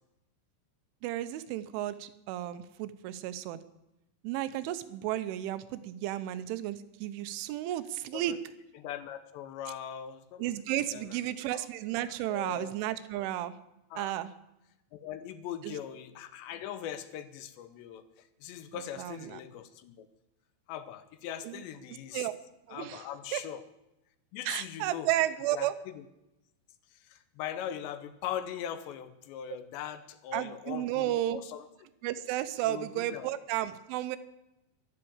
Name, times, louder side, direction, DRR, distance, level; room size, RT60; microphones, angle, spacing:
voice 1, 1.0-3.6 4.2-8.4 10.4-13.6 14.0-14.3 15.6-15.8 18.7-19.4 21.4-21.6 22.1-22.4 22.7-23.1 23.3-23.4 24.5-25.8 29.5-29.6 30.3-31.4 32.0-34.2, right 13 dB, 85° right, 12 dB, 3.3 m, -33 dB
voice 2, 8.8-10.5 10.9-11.2 11.5-11.6 12.3-12.7 13.9-14.1 14.9-18.0 18.4-20.1 20.7-22.3 22.7-23.6 24.3-25.1 25.5-25.7 27.1-31.6 32.7-33.3, left 10 dB, 75° left, 11 dB, 2.9 m, -40 dB
12.5 x 12.0 x 8.6 m, 0.91 s
omnidirectional pair, 5.4 m